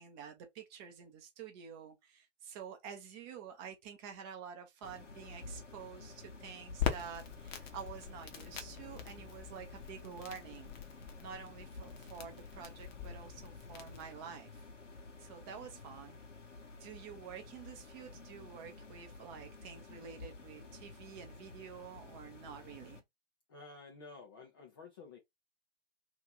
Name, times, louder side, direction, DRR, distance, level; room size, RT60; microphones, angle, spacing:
voice 1, 0.0-10.7 11.2-14.6 15.2-16.2 16.8-23.0, right 7 dB, 20° right, 0.7 m, -49 dB
sound 1, 4.8-23.0, left 3 dB, 80° left, 1.2 m, -52 dB
Crackle, 6.8-14.1, left 9 dB, 40° left, 0.9 m, -43 dB
voice 2, 23.5-25.2, left 4 dB, 20° left, 0.4 m, -52 dB
3.0 x 2.5 x 3.8 m
figure-of-eight pair, 120°, 36 cm